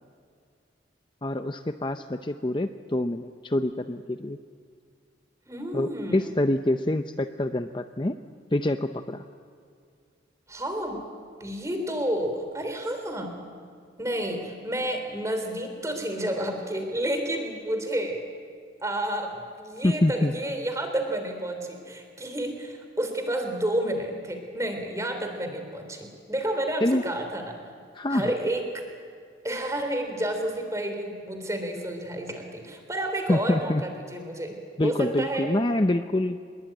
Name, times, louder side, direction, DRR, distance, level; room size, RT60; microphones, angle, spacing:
voice 1, 1.2-4.4 5.7-8.2 8.5-9.2 19.8-20.3 26.8-27.0 27.9-28.3 33.3-33.8 34.8-36.4, left 1 dB, 25° left, 8 dB, 0.6 m, -26 dB
voice 2, 5.5-6.3 10.5-11.0 11.4-13.4 14.0-18.2 18.8-27.5 28.1-28.8 29.4-34.6 34.8-35.5, right 1 dB, 15° right, 5 dB, 3.6 m, -30 dB
25.5 x 21.5 x 9.0 m, 2.2 s
head